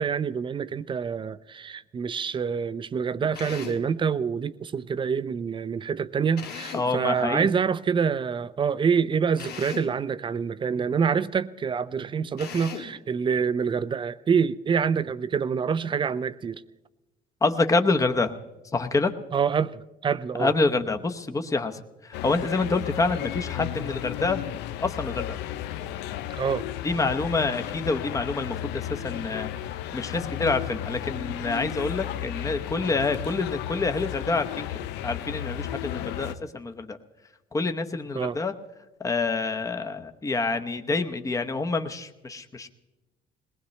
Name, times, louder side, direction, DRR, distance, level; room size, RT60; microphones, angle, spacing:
voice 1, 0.0-16.6 19.3-20.5 26.3-26.7 38.1-38.4, right 6 dB, 30° right, 0.5 m, -26 dB
Drill, 3.3-3.9 6.4-7.0 9.4-10.0 12.4-13.0, left 7 dB, 70° left, 1.5 m, -38 dB
voice 2, 6.7-7.5 17.4-18.3 18.7-19.1 20.4-24.4 24.8-25.4 26.8-29.5 29.9-34.7 35.0-37.0 37.5-38.5 39.0-42.7, left 3 dB, 20° left, 0.9 m, -27 dB
sound 1, 22.1-36.3, left 12 dB, 90° left, 0.6 m, -34 dB
21.0 x 19.0 x 3.2 m
cardioid pair, 110°, 17 cm